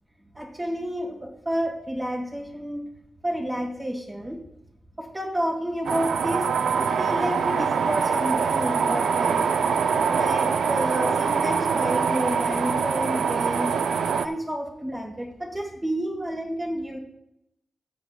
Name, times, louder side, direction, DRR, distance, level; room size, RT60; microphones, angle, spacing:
voice 1, 0.3-2.8 3.2-4.4 5.0-6.5 6.8-9.5 10.1-13.7 14.2-17.0, equal, 25° right, -2 dB, 1.7 m, -30 dB
sound 1, 5.9-14.3, right 6 dB, 85° right, 0.5 m, -24 dB
18.5 x 7.1 x 2.4 m, 0.82 s
cardioid pair, 70°, 0 cm